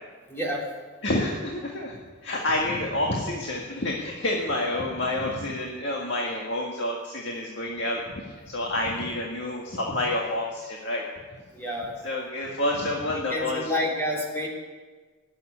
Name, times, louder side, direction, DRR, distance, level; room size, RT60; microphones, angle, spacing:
voice 1, 0.3-0.6 4.7-4.8 11.5-11.9 13.3-14.5, left 1 dB, 10° left, -2 dB, 3.0 m, -29 dB
voice 2, 1.0-11.0 12.0-13.7, left 1 dB, 60° left, -2 dB, 1.9 m, -28 dB
18.0 x 7.8 x 9.7 m, 1.4 s
head